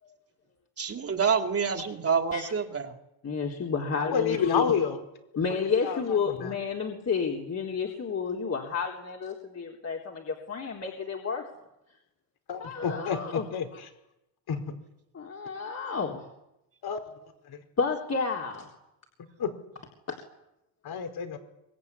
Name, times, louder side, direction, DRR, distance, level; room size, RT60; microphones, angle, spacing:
voice 1, 0.8-2.9, right 6 dB, 30° right, 5 dB, 3.2 m, -27 dB
voice 2, 3.2-4.6 5.4-11.4 12.6-13.5 13.7-13.8 15.1-16.3 17.8-18.7 20.1-20.2, left 5 dB, 35° left, 0 dB, 3.9 m, -31 dB
voice 3, 4.1-5.0 5.9-6.0 12.5-13.2 13.5-13.6 14.5-14.6 16.8-17.0 19.4-19.5 20.8-21.4, left 7 dB, 50° left, 8 dB, 4.6 m, -27 dB
24.5 x 21.5 x 9.9 m, 0.88 s
cardioid pair, 110°, 47 cm